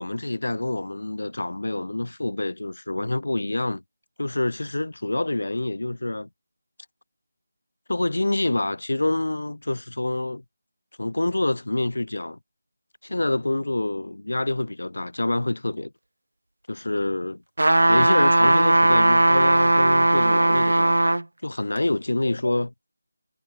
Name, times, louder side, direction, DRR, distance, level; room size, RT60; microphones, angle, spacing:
voice 1, 0.0-3.8 4.2-6.3 7.9-10.4 11.0-12.4 13.0-15.9 16.7-17.4 17.9-20.9 21.4-22.7, left 2 dB, 75° left, 1.6 m, -26 dB
sound 1, 17.6-21.2 21.8-21.9, right 1 dB, 75° right, 0.3 m, -18 dB
figure-of-eight pair, 160°, 0 cm